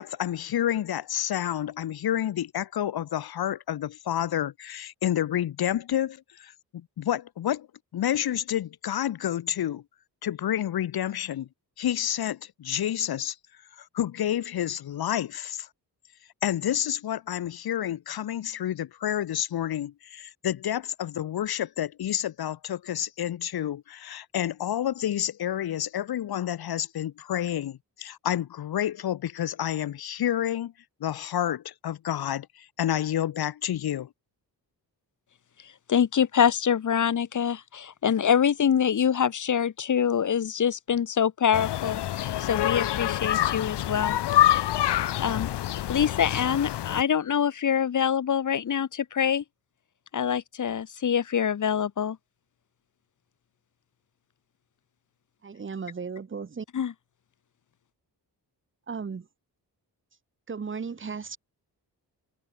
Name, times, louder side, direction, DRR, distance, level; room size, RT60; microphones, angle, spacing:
voice 1, 0.0-7.7 7.9-9.8 10.2-11.5 11.8-13.4 13.8-15.7 16.4-30.7 31.0-34.1, left 11 dB, 65° left, 1.5 m, -29 dB
voice 2, 35.9-44.2 44.9-45.5 45.9-49.4 50.1-52.2 56.7-56.9, left 8 dB, 50° left, 2.5 m, -25 dB
sound 1, 41.5-47.0, left 13 dB, 85° left, 1.4 m, -26 dB
voice 3, 55.4-56.6 58.9-59.3 60.5-61.4, right 5 dB, 30° right, 2.7 m, -35 dB
wide cardioid pair, 170°, 40 cm